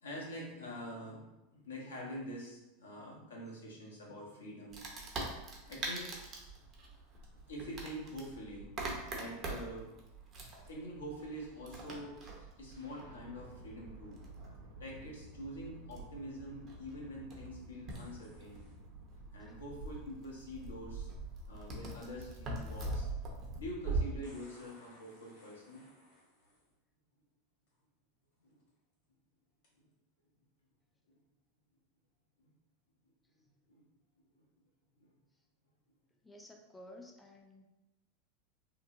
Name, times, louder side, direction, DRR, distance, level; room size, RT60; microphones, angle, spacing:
voice 1, 0.0-4.8 5.6-6.1 7.3-8.7 9.1-9.9 10.6-14.5 14.8-18.6 19.3-21.1 21.4-23.1 23.6-25.8 28.4-28.6 29.8-29.9 31.1-31.2 33.7-33.8 35.0-35.1, equal, 85° left, -2 dB, 0.7 m, -46 dB
Wood, 4.7-24.0, right 3 dB, 40° right, 0.6 m, -43 dB
sound 1, 12.7-24.6, left 1 dB, 85° right, 0.5 m, -56 dB
sound 2, 17.9-18.8 20.8-20.9 24.2-26.7 27.7-27.8 28.4-28.7 29.6-29.7, left 1 dB, 65° left, 1.2 m, -62 dB
voice 2, 36.2-37.6, left 1 dB, 10° left, 1 dB, 0.4 m, -54 dB
2.7 x 2.0 x 2.7 m, 0.97 s
hypercardioid pair, 90°, 0 cm